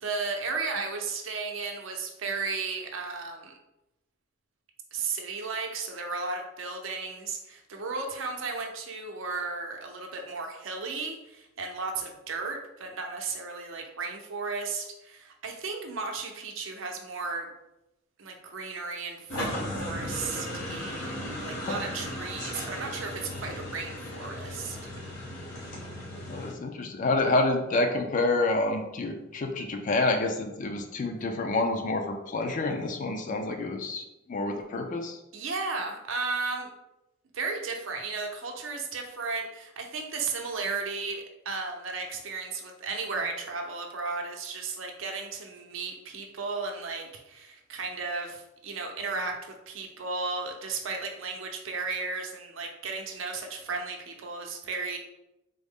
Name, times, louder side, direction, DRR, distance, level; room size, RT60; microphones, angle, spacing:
voice 1, 0.0-3.6 4.9-17.5 18.2-19.5 19.7-24.8 35.3-36.7 37.3-55.0, right 4 dB, 75° right, 3 dB, 0.6 m, -34 dB
sound 1, 19.3-26.5, left 1 dB, 90° left, 1.0 m, -36 dB
voice 2, 26.3-34.0 34.3-35.2, left 2 dB, 40° left, 5 dB, 0.4 m, -28 dB
3.7 x 2.0 x 3.5 m, 0.90 s
head